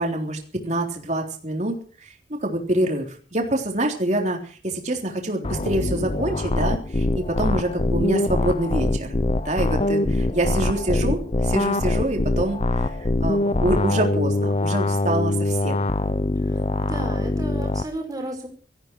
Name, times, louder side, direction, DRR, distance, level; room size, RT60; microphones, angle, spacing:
voice 1, 0.0-9.2 9.5-15.9, right 1 dB, 40° right, 2 dB, 3.6 m, -26 dB
sound 1, 5.4-17.8, left 2 dB, 30° left, 0.7 m, -23 dB
voice 2, 16.4-18.5, right 1 dB, 20° right, 1 dB, 5.3 m, -34 dB
18.0 x 14.5 x 4.7 m, 0.42 s
head